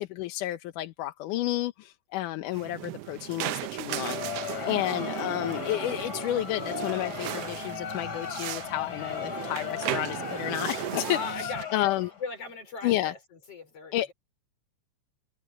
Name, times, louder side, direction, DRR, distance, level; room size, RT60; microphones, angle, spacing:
voice 1, 0.0-4.2 4.7-12.1 12.8-13.1 13.9-14.1, left 14 dB, 85° left, 2.4 m, -31 dB
sound 1, 2.5-11.6, right 15 dB, 85° right, 1.4 m, -36 dB
Crowd, 3.8-12.3, left 8 dB, 35° left, 3.3 m, -37 dB
voice 2, 11.0-11.9 12.2-13.2 13.5-14.1, left 4 dB, 50° left, 6.2 m, -38 dB
omnidirectional pair, 3.6 m